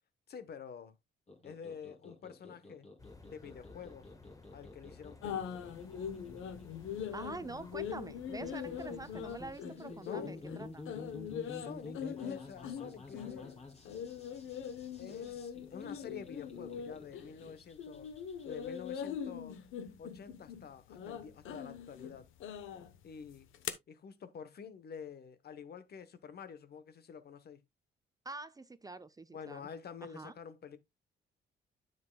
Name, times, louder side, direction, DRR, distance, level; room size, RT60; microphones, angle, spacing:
voice 1, 0.3-1.0 1.4-2.9 3.3-4.1 4.5-5.7 10.0-10.7 11.4-13.6 15.0-18.1 18.5-19.6 20.0-22.3 23.0-23.5 23.9-27.6 29.3-30.8, left 7 dB, 55° left, 1.0 m, -48 dB
sound 1, 1.3-19.0, left 2 dB, 30° left, 2.6 m, -52 dB
sound 2, 3.0-9.5, left 3 dB, 15° left, 1.3 m, -56 dB
sound 3, 5.2-17.5 17.8-23.7, left 8 dB, 80° left, 0.9 m, -42 dB
voice 2, 7.1-10.9 28.2-29.7 30.0-30.3, right 3 dB, 20° right, 0.5 m, -45 dB
9.4 x 7.8 x 2.2 m
cardioid pair, 90°, 20 cm